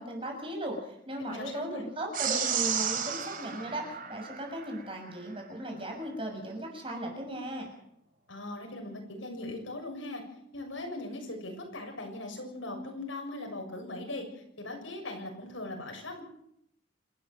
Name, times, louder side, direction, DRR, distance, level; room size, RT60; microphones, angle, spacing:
voice 1, 0.0-7.7, right 1 dB, 25° right, 2 dB, 6.5 m, -37 dB
voice 2, 1.2-1.8 8.3-10.2 10.5-16.2, left 2 dB, 85° left, 3 dB, 7.1 m, -39 dB
sound 1, 2.1-4.8, right 7 dB, 45° right, 3.7 m, -32 dB
27.5 x 13.5 x 7.8 m, 0.74 s
head